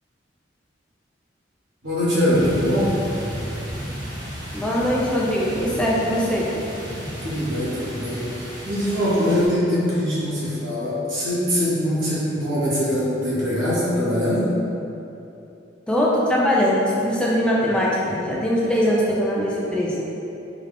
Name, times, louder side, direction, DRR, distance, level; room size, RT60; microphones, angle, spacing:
voice 1, 1.8-3.0 7.2-14.5, equal, 85° right, -8 dB, 1.0 m, -22 dB
sound 1, 2.3-9.5, equal, 20° right, 0.7 m, -33 dB
voice 2, 4.5-6.5 15.9-20.0, equal, 5° left, -5 dB, 0.3 m, -21 dB
3.5 x 2.3 x 3.3 m, 2.9 s
head